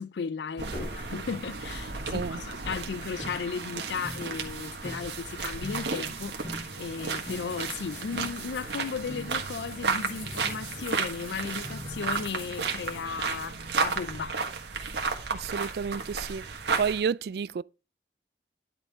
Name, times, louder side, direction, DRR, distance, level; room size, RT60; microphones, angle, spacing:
voice 1, 0.0-14.4 14.8-15.0, left 5 dB, 80° left, 0.4 m, -36 dB
sound 1, 0.6-17.0, right 4 dB, 80° right, 1.5 m, -33 dB
sound 2, 0.7-13.5, left 3 dB, 50° left, 2.3 m, -47 dB
sound 3, 3.2-3.4 4.0-4.3 4.8-5.1 5.6-5.9 6.4-6.7 7.3-7.5 8.1-8.4 9.1-9.4 10.2-10.9 11.6-12.3, left 1 dB, 10° left, 0.5 m, -41 dB
voice 2, 15.3-17.6, right 6 dB, 60° right, 0.3 m, -31 dB
10.5 x 5.1 x 3.6 m
head